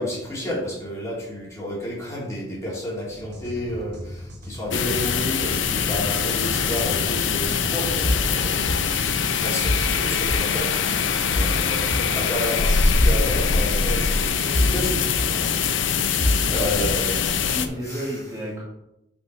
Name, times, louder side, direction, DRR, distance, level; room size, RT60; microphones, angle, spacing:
voice 1, 0.0-18.2, left 1 dB, 15° left, -5 dB, 2.9 m, -31 dB
sound 1, 3.1-9.2, equal, 60° right, 1.9 m, -38 dB
sound 2, 4.7-17.7, left 6 dB, 85° left, 0.7 m, -23 dB
sound 3, 8.0-8.3 8.7-8.8 9.6-9.9 10.3-10.4 11.3-11.5 11.9-12.0 13.0-13.2 13.5-13.6 14.5-14.8 15.2-15.3 16.2-16.4 16.8-17.0, left 1 dB, 60° left, 1.0 m, -23 dB
voice 2, 16.2-17.0 17.5-18.6, right 1 dB, 15° right, -7 dB, 1.9 m, -32 dB
6.0 x 5.7 x 5.6 m, 0.86 s
head